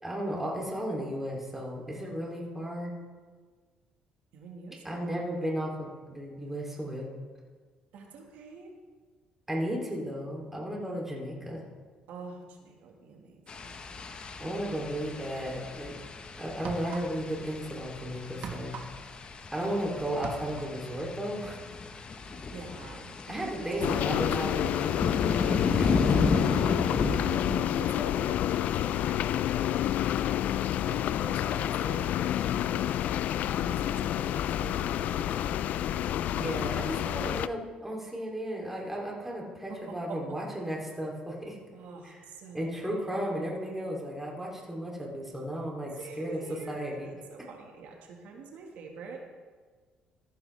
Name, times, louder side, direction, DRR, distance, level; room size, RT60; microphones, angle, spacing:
voice 1, 0.0-2.9 4.8-7.1 9.5-11.6 14.4-16.0 16.3-18.8 19.5-21.6 23.3-25.1 25.3-25.9 36.4-41.6 42.0-42.2 42.5-46.4 46.7-47.1, equal, 10° right, -2 dB, 2.8 m, -34 dB
voice 2, 4.3-5.4 7.9-8.7 12.1-13.8 19.5-19.9 22.5-24.3 25.8-32.2 32.5-35.9 39.7-40.4 41.7-43.1 45.9-49.3, right 4 dB, 75° right, 1 dB, 1.6 m, -45 dB
sound 1, 13.5-27.6, left 4 dB, 40° left, 1.0 m, -33 dB
sound 2, 16.6-17.4 17.7-19.8 20.1-20.8, right 5 dB, 60° right, 1.4 m, -41 dB
sound 3, 23.8-37.5, left 11 dB, 70° left, 0.3 m, -29 dB
14.0 x 11.0 x 3.3 m, 1.5 s
cardioid pair, 100°, 3 cm